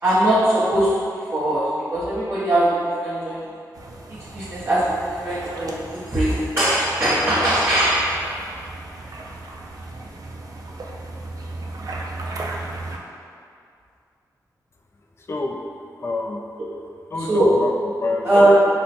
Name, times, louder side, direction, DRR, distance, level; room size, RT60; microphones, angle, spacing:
voice 1, 0.0-3.5 4.1-8.0 17.2-17.5 18.2-18.5, right 1 dB, 30° right, -12 dB, 0.9 m, -21 dB
sound 1, 3.7-13.0, right 2 dB, 60° right, 0.4 m, -36 dB
voice 2, 15.2-15.6 16.0-16.4 17.1-18.3, left 2 dB, 40° left, 1 dB, 0.4 m, -27 dB
5.3 x 2.1 x 4.2 m, 2.4 s
wide cardioid pair, 155°, 7 cm